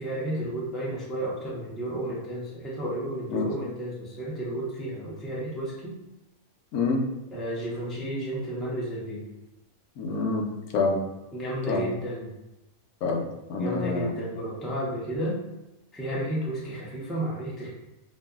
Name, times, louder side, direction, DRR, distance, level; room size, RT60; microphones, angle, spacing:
voice 1, 0.0-6.0 7.3-9.2 11.3-12.3 13.6-15.4 15.9-17.7, right 1 dB, ahead, -5 dB, 0.5 m, -32 dB
voice 2, 6.7-7.0 10.0-10.5 10.7-11.0 11.7-11.8 13.0-14.1, left 3 dB, 80° left, 2 dB, 1.1 m, -27 dB
5.1 x 2.6 x 2.3 m, 0.95 s
omnidirectional pair, 1.5 m